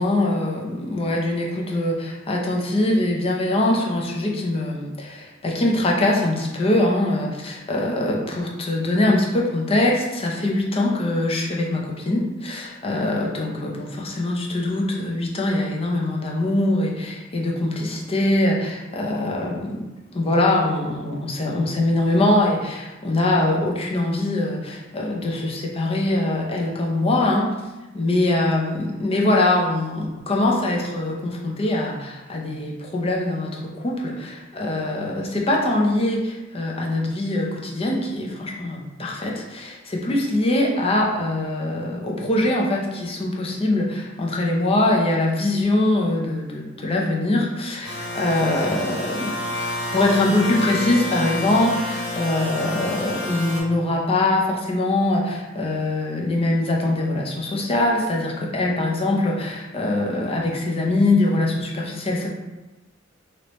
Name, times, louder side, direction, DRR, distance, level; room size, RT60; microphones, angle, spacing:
voice 1, 0.0-19.8 20.1-27.5 27.9-49.3 49.9-62.3, left 2 dB, 30° left, -1 dB, 0.5 m, -23 dB
sound 1, 47.8-53.6, left 1 dB, ahead, 1.3 m, -29 dB
3.0 x 2.8 x 3.0 m, 1.1 s
head